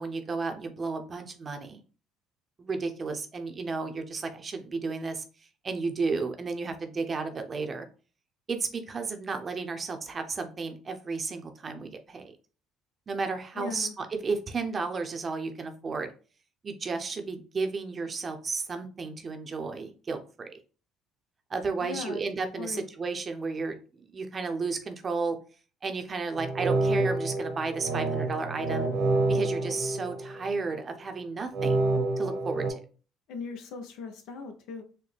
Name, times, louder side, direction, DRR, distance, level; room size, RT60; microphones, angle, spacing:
voice 1, 0.0-1.8 2.6-5.2 5.6-7.9 8.5-12.4 13.1-16.1 16.6-20.5 21.5-25.4 25.8-28.9 29.3-31.8 32.2-32.8, right 4 dB, 35° right, 6 dB, 0.6 m, -33 dB
voice 2, 13.5-13.9 21.8-22.2 22.6-22.9 33.3-34.8, left 4 dB, 75° left, 6 dB, 0.7 m, -38 dB
sound 1, 26.3-30.7 31.5-32.7, right 2 dB, 60° right, 0.9 m, -28 dB
4.1 x 2.1 x 3.3 m, 0.37 s
supercardioid pair, 75°, 0 cm